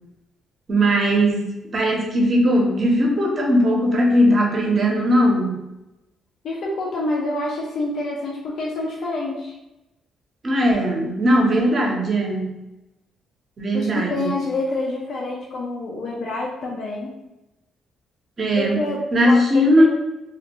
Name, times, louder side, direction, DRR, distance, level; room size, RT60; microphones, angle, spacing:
voice 1, 0.7-5.6 10.4-12.6 13.6-14.3 18.4-18.8 19.1-19.8, equal, 40° right, 0 dB, 0.7 m, -19 dB
voice 2, 6.4-9.6 13.7-17.1 18.6-19.8, left 2 dB, 65° left, -3 dB, 0.5 m, -27 dB
2.4 x 2.1 x 2.9 m, 0.96 s
cardioid pair, 90°, 0 cm